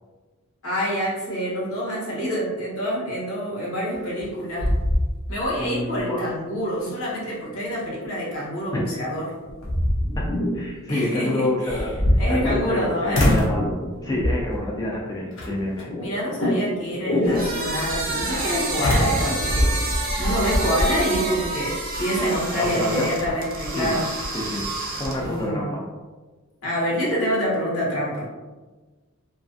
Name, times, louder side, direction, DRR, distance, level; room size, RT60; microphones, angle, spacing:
voice 1, 0.6-4.7 5.3-9.3 10.9-11.8 12.2-13.3 16.0-19.9 20.2-24.1 25.2-25.7 26.6-28.3, equal, 80° left, -6 dB, 0.9 m, -26 dB
sound 1, 3.9-4.3 4.6-5.6 6.0-6.1 8.8-8.9 9.4-10.3 11.7-12.8 13.1-13.6 14.2-14.6 15.4-15.8 18.8-20.7, left 1 dB, 65° left, 0.5 m, -22 dB
voice 2, 5.6-6.3 8.7-8.9 10.2-10.3 10.5-12.0 12.3-13.6 14.0-15.9 22.5-23.1 23.7-23.9 24.3-24.6 25.0-25.8, left 1 dB, 15° left, -3 dB, 0.3 m, -27 dB
sound 2, 9.8-19.6, left 1 dB, 30° left, 0.7 m, -31 dB
sound 3, 17.2-25.4, right 2 dB, 40° right, 0.5 m, -28 dB
2.3 x 2.3 x 2.5 m, 1.3 s
head